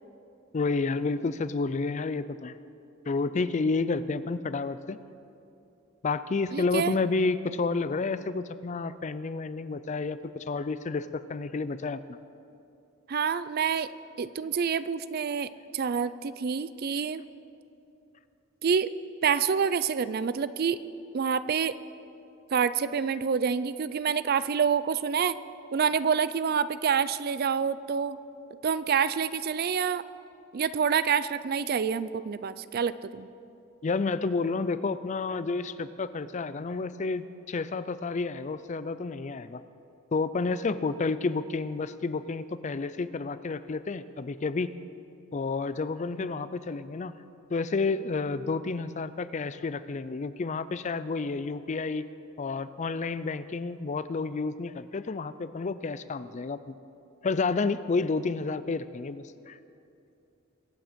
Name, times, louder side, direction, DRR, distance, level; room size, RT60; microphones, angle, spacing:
voice 1, 0.5-2.6 3.1-5.0 6.0-12.0 33.8-39.6 40.1-44.7 45.3-47.1 47.5-52.0 52.4-56.7 57.2-59.6, left 4 dB, 35° left, 14 dB, 0.4 m, -30 dB
voice 2, 6.5-6.9 13.1-13.9 14.2-17.2 18.6-18.9 19.2-20.8 21.1-21.8 22.5-25.4 25.7-28.2 28.6-30.0 30.5-33.3, right 6 dB, 45° right, 15 dB, 0.4 m, -27 dB
22.5 x 8.9 x 5.2 m, 2.6 s
head